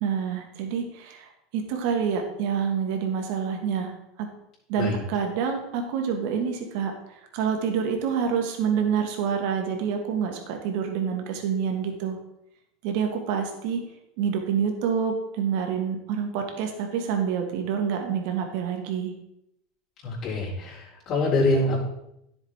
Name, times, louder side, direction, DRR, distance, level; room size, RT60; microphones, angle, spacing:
voice 1, 0.0-3.9 4.2-4.3 4.7-6.9 7.3-12.2 12.8-13.8 14.2-19.1, right 7 dB, 65° right, 3 dB, 2.0 m, -27 dB
voice 2, 20.0-21.8, left 2 dB, 45° left, -6 dB, 4.0 m, -25 dB
10.5 x 7.3 x 3.7 m, 0.81 s
supercardioid pair, 115°, 0 cm